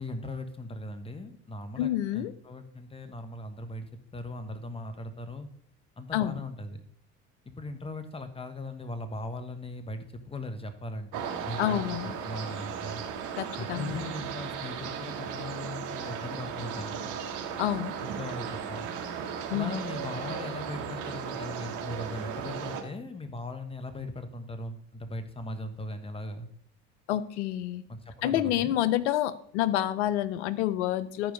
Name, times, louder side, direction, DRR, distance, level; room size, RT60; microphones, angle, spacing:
voice 1, 0.0-5.5 6.0-6.8 7.4-13.0 13.6-17.2 18.0-18.9 19.5-26.5 27.9-28.7, left 2 dB, 15° left, 9 dB, 1.4 m, -39 dB
voice 2, 1.8-2.3 6.1-6.4 11.6-12.1 13.4-13.9 17.6-17.9 19.5-19.8 27.1-27.8 28.2-31.3, left 12 dB, 80° left, 15 dB, 0.7 m, -28 dB
sound 1, 11.1-22.8, right 7 dB, 60° right, 1.9 m, -36 dB
11.5 x 4.8 x 5.2 m, 0.65 s
hypercardioid pair, 80°, 34 cm